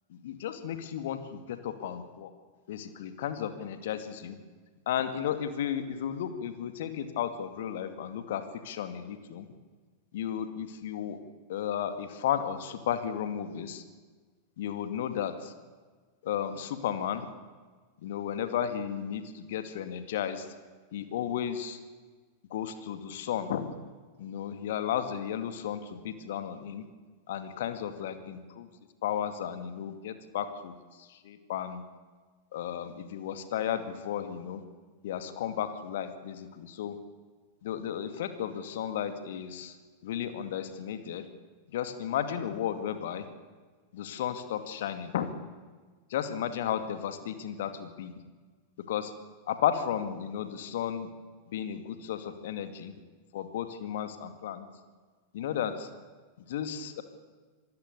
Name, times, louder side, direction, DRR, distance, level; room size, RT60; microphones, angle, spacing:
voice 1, 0.1-2.3 2.7-4.4 4.9-9.5 10.1-11.2 11.5-13.8 14.6-15.5 16.2-17.3 18.0-20.5 20.9-21.8 22.5-23.7 24.2-26.9 27.3-28.7 29.0-31.8 32.5-34.6 35.0-37.0 37.6-39.8 40.0-41.3 41.7-43.3 43.9-45.3 46.1-48.2 48.9-49.1 49.5-51.1 51.5-52.9 53.3-54.7 55.3-55.9 56.4-57.0, left 9 dB, 55° left, 9 dB, 2.3 m, -34 dB
26.5 x 19.0 x 6.8 m, 1.4 s
figure-of-eight pair, 90°, 0 cm